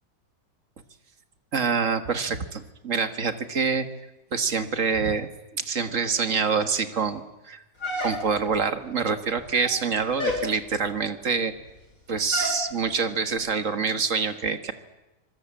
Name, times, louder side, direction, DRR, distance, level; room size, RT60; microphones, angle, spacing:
voice 1, 1.5-3.9 4.3-7.6 8.0-11.5 12.1-14.7, right 5 dB, 45° right, 9 dB, 1.8 m, -26 dB
sound 1, 7.8-8.6 9.4-9.8 10.2-10.5 12.3-12.6, left 2 dB, 45° left, 6.4 m, -29 dB
25.0 x 21.5 x 8.8 m, 1.0 s
omnidirectional pair, 1.9 m